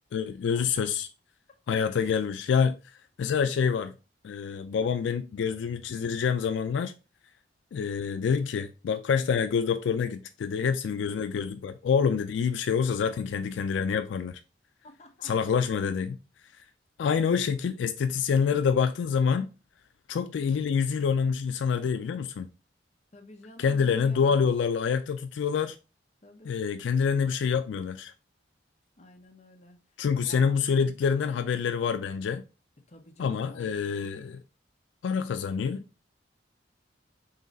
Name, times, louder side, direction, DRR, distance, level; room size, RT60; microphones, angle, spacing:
voice 1, 0.1-1.1 1.7-2.8 3.2-3.9 4.2-6.9 7.7-14.4 15.2-16.2 16.6-16.7 17.0-19.5 20.1-22.5 23.6-25.8 26.4-28.1 30.0-32.4 33.2-34.4 35.0-35.9, left 6 dB, 80° left, 0.3 m, -27 dB
voice 2, 14.8-15.3 23.1-24.5 26.2-26.5 29.0-29.8 30.2-30.6 32.9-34.3, left 1 dB, 35° left, 0.8 m, -50 dB
3.9 x 3.1 x 3.9 m
head